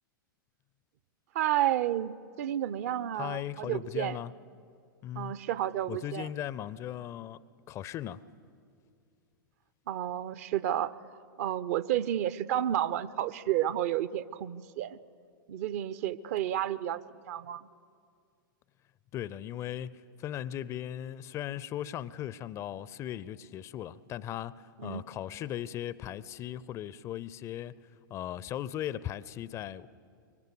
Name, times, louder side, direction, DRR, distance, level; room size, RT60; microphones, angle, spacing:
voice 1, 1.3-4.2 5.2-6.3 9.9-11.0 11.4-15.0 15.5-17.0 17.3-17.7 24.8-25.0, right 12 dB, 45° right, 0.7 m, -31 dB
voice 2, 3.1-4.3 5.0-5.3 5.9-8.2 19.1-27.8 28.1-29.9, left 11 dB, 25° left, 0.5 m, -38 dB
25.5 x 23.0 x 7.9 m
figure-of-eight pair, 100°, 11 cm